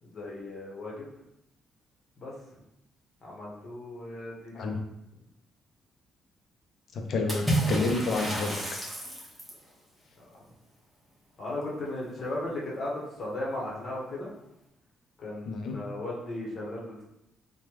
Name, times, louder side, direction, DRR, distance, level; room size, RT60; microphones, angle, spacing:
voice 1, 0.0-1.1 2.2-2.3 3.2-4.7 10.2-10.4 11.4-14.3 15.2-17.0, left 1 dB, 50° left, -4 dB, 1.0 m, -36 dB
voice 2, 6.9-8.5 15.5-15.7, left 3 dB, 65° left, 4 dB, 0.5 m, -29 dB
Water / Splash splatter, 7.3-9.7, right 1 dB, 5° right, 1.0 m, -30 dB
3.3 x 2.2 x 3.0 m, 0.83 s
cardioid pair, 90°, 0 cm